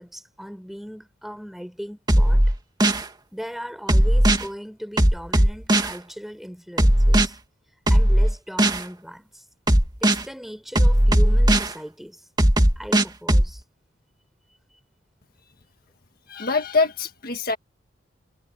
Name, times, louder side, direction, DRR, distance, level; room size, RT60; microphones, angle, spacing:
voice 1, 0.0-2.4 3.3-7.4 7.9-9.4 10.0-12.2 12.8-13.6, equal, ahead, 6.3 m, -38 dB
sound 1, 2.1-3.0 3.9-4.4 5.0-5.9 6.8-7.3 7.9-8.8 9.7-10.2 10.7-11.7 12.4-13.5, right 1 dB, 25° right, 2.4 m, -17 dB
voice 2, 16.3-17.6, left 4 dB, 55° left, 1.7 m, -24 dB
head